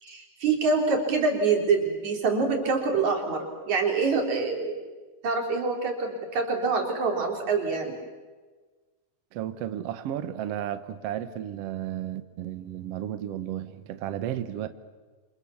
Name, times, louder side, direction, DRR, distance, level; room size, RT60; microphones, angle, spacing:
voice 1, 0.0-4.8 5.2-8.0, right 4 dB, 50° right, 2 dB, 4.7 m, -25 dB
voice 2, 9.3-14.7, right 11 dB, 85° right, 11 dB, 1.3 m, -33 dB
28.0 x 26.5 x 7.2 m, 1.3 s
omnidirectional pair, 4.4 m